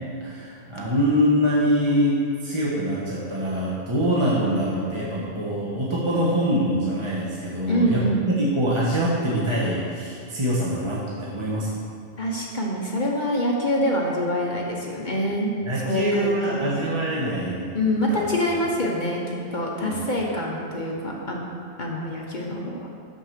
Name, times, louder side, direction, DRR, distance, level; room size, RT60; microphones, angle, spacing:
voice 1, 0.2-11.7 15.6-17.8 18.1-18.3 19.8-20.0, equal, 25° right, -6 dB, 1.1 m, -24 dB
voice 2, 7.7-8.3 12.2-15.5 15.8-17.0 17.7-21.4 21.8-22.9, equal, 45° left, -2 dB, 1.0 m, -25 dB
6.3 x 6.0 x 6.7 m, 2.4 s
omnidirectional pair, 1.2 m